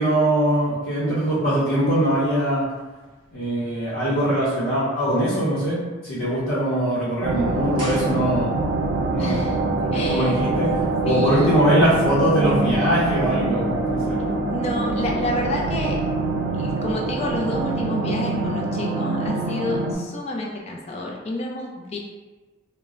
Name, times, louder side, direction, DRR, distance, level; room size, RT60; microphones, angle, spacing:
voice 1, 0.0-2.7 3.3-8.5 9.1-9.5 9.8-10.7 11.0-14.2, equal, 75° left, -11 dB, 0.8 m, -22 dB
sound 1, 7.2-19.9, right 3 dB, 70° right, 0.3 m, -24 dB
sound 2, 7.7-8.8 9.1-9.2, equal, 25° right, 0.8 m, -37 dB
voice 2, 9.2-9.6 9.9-10.6 11.1-11.6 14.5-16.0 16.5-22.0, left 1 dB, 30° left, -1 dB, 0.3 m, -29 dB
2.1 x 2.1 x 3.6 m, 1.2 s
head